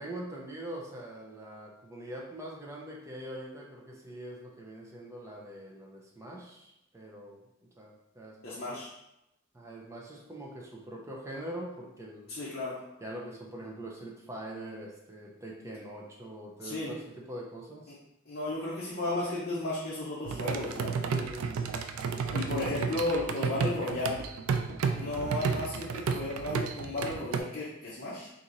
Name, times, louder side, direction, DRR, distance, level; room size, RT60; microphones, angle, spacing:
voice 1, 0.0-7.4 7.8-8.8 9.5-12.3 13.0-17.9 21.1-21.7 22.2-22.6 25.1-25.4, right 1 dB, 15° right, -2 dB, 0.5 m, -43 dB
voice 2, 8.4-8.9 12.3-12.8 16.6-16.9 18.3-20.9 22.3-24.2 25.0-28.3, left 2 dB, 50° left, -7 dB, 0.7 m, -34 dB
sound 1, 20.2-27.4, right 5 dB, 90° right, 0.3 m, -32 dB
2.9 x 2.6 x 3.8 m, 0.86 s
head